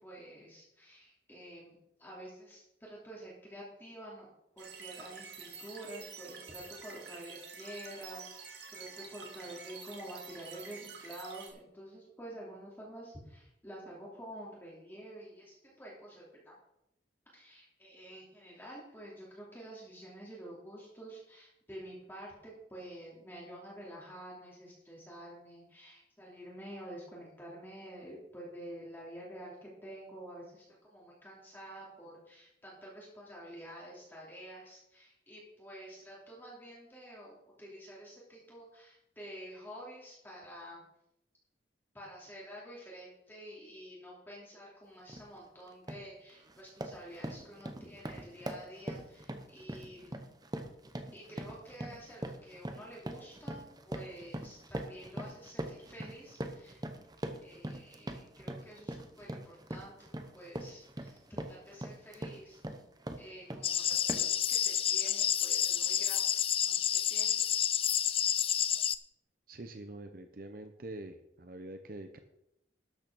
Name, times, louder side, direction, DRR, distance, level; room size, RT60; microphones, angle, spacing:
voice 1, 0.0-16.6 17.3-40.8 41.9-50.3 51.1-56.8 57.4-59.9 60.3-62.6 63.2-67.7, right 1 dB, 10° left, -5 dB, 3.0 m, -49 dB
sound 1, 4.6-11.5, right 5 dB, 75° right, 2.0 m, -48 dB
sound 2, 45.1-45.3 45.7-46.1 46.5-63.7 64.1-64.4, right 1 dB, 20° right, 0.8 m, -42 dB
sound 3, 63.6-69.0, left 10 dB, 30° left, 0.4 m, -29 dB
voice 2, 69.5-72.2, right 2 dB, 50° right, 7 dB, 0.7 m, -45 dB
12.5 x 6.5 x 6.2 m, 0.83 s
head